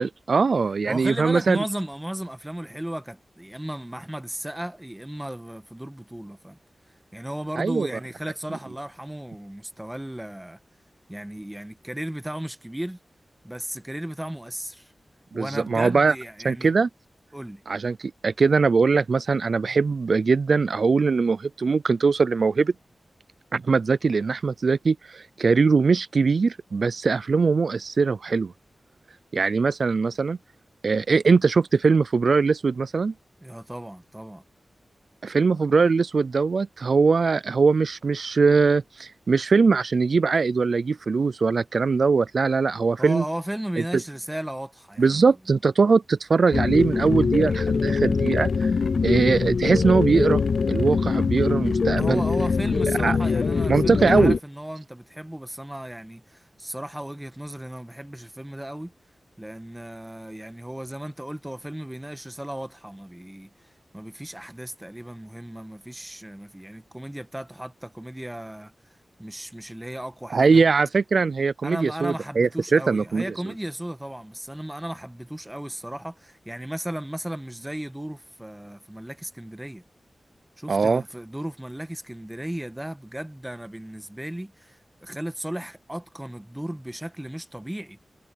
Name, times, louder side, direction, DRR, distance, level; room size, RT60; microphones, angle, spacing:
voice 1, 0.0-1.6 7.6-7.9 15.3-16.1 16.4-16.9 17.7-22.7 23.5-28.5 29.3-30.4 30.8-33.1 35.2-43.2 45.0-48.7 49.0-50.4 50.7-52.2 53.0-53.2 53.7-54.4 70.3-73.2 80.7-81.0, right 4 dB, 65° right, 0.3 m, -21 dB
voice 2, 0.9-6.6 7.1-10.6 11.1-13.0 13.4-14.9 15.3-16.7 17.3-17.6 33.4-34.4 43.0-45.3 52.0-58.9 59.4-63.7 63.9-68.7 69.2-70.6 71.6-79.8 80.6-88.0, right 1 dB, 10° right, 1.3 m, -35 dB
sound 1, 46.5-54.4, left 5 dB, 75° left, 0.4 m, -23 dB
wide cardioid pair, 105°, 0 cm